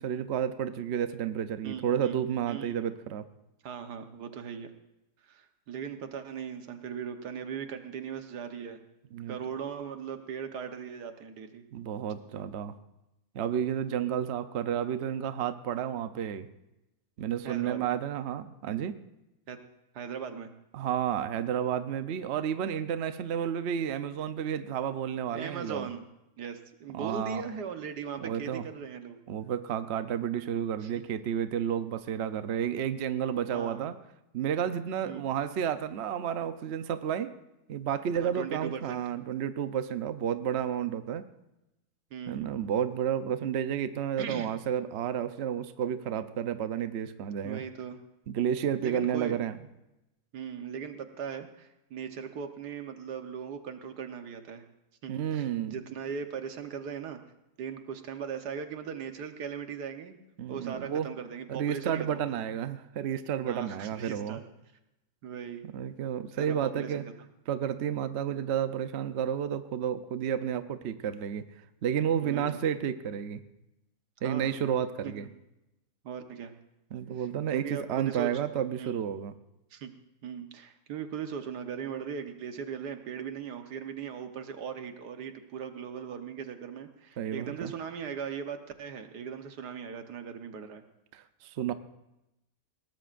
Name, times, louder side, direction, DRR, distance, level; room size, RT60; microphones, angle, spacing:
voice 1, 0.0-3.2 9.1-9.4 11.7-12.8 13.3-16.5 17.2-19.0 20.7-25.9 26.9-27.4 28.2-28.7 29.3-33.9 34.3-37.3 37.7-41.3 42.3-47.6 48.3-49.6 55.1-55.8 60.4-61.1 61.5-64.4 65.7-67.0 67.5-71.5 71.8-73.4 74.2-75.3 76.9-79.3 87.2-87.7 91.1-91.7, right 9 dB, 55° right, 10 dB, 0.8 m, -31 dB
voice 2, 1.6-2.2 2.5-2.7 3.6-4.7 5.3-8.8 9.3-11.6 17.4-17.8 19.5-19.6 19.9-20.5 25.3-26.0 26.4-29.2 30.8-30.9 33.5-33.8 35.0-35.2 38.2-39.0 42.1-42.5 44.2-44.5 47.4-48.0 48.8-49.4 50.3-54.6 55.0-57.2 57.6-60.2 60.5-62.6 63.5-64.4 65.2-65.7 66.3-67.1 72.2-72.5 74.2-74.6 75.0-75.1 76.0-76.5 77.1-78.3 78.8-78.9 79.7-79.9 80.2-90.8, right 7 dB, 90° right, 7 dB, 1.7 m, -39 dB
21.5 x 18.0 x 2.5 m, 0.91 s
omnidirectional pair, 1.7 m